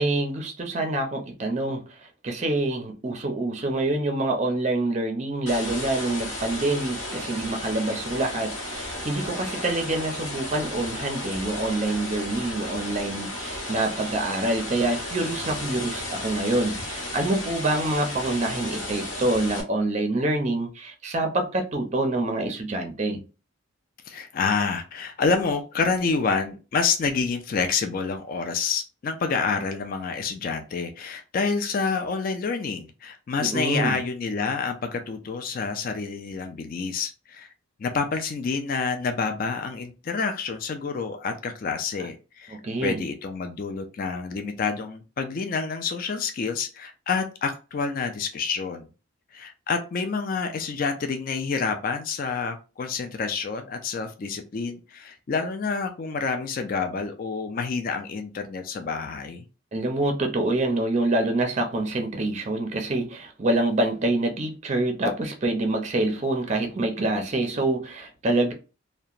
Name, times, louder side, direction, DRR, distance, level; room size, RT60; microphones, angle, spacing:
voice 1, 0.0-1.8 2.2-23.2 33.4-34.0 42.5-43.0 59.7-68.5, right 2 dB, 35° right, 0.5 m, -26 dB
sound 1, 5.5-19.6, left 1 dB, 65° left, 1.0 m, -34 dB
voice 2, 24.1-37.5 37.8-48.9 49.3-59.4, left 5 dB, 40° left, 0.3 m, -28 dB
2.8 x 2.1 x 2.4 m
head